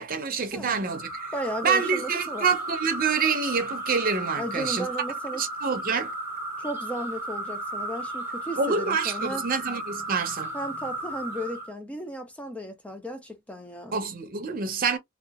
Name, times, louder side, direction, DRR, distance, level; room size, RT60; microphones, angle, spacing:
voice 1, 0.0-1.3 1.6-4.9 5.3-6.1 8.6-10.5 13.9-15.0, right 5 dB, 45° right, 0.6 m, -27 dB
sound 1, 0.9-11.7, right 2 dB, 10° right, 0.8 m, -34 dB
voice 2, 1.3-2.5 4.4-5.4 6.6-9.5 10.5-14.0, right 1 dB, 5° left, 0.4 m, -35 dB
2.7 x 2.3 x 2.3 m
head